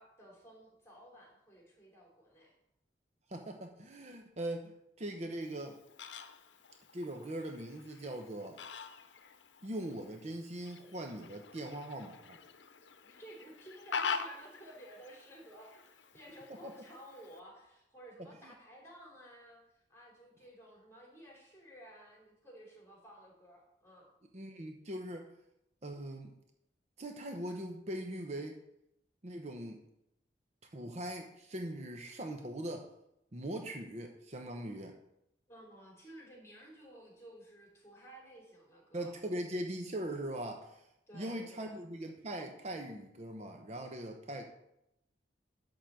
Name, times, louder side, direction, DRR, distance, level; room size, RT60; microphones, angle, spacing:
voice 1, 0.0-2.5 13.0-24.1 35.5-39.2 41.1-41.8, right 1 dB, 15° left, -1 dB, 3.2 m, -54 dB
voice 2, 3.3-5.8 6.9-8.6 9.6-12.4 16.5-16.7 18.2-18.5 24.3-25.3 25.8-26.3 27.0-28.6 29.2-29.8 30.7-32.9 33.3-34.9 38.9-40.9 41.1-44.4, right 1 dB, 40° right, 3 dB, 0.8 m, -41 dB
Fowl, 5.4-17.4, left 5 dB, 90° left, 0.7 m, -45 dB
11.5 x 3.9 x 7.5 m, 0.81 s
head